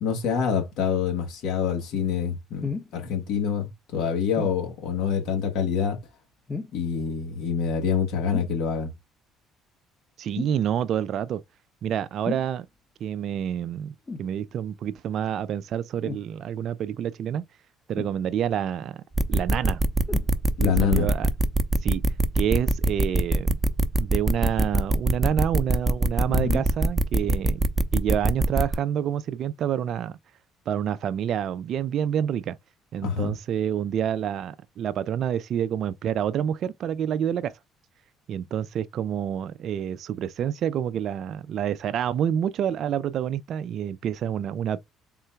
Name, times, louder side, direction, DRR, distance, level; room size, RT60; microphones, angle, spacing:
voice 1, 0.0-6.0 6.7-8.9 20.6-21.1 26.3-26.6 33.0-33.3, left 7 dB, 70° left, 1.3 m, -26 dB
sound 1, 2.6-2.9 4.4-4.6 6.5-6.9 8.3-8.6 10.3-10.6 12.2-12.5 14.1-14.3 16.0-16.3 18.0-18.5 20.1-20.3 21.1-21.2, left 4 dB, 25° left, 0.8 m, -33 dB
voice 2, 10.2-11.4 11.8-12.7 13.0-17.4 17.9-19.0 19.3-19.8 20.6-21.3 21.8-22.0 22.3-23.6 24.0-30.2 30.7-32.6 32.9-37.5 38.3-44.8, right 9 dB, 60° right, 0.3 m, -28 dB
sound 2, 19.1-28.7, right 1 dB, 15° right, 0.6 m, -22 dB
3.7 x 2.2 x 4.4 m
supercardioid pair, 70°, 0 cm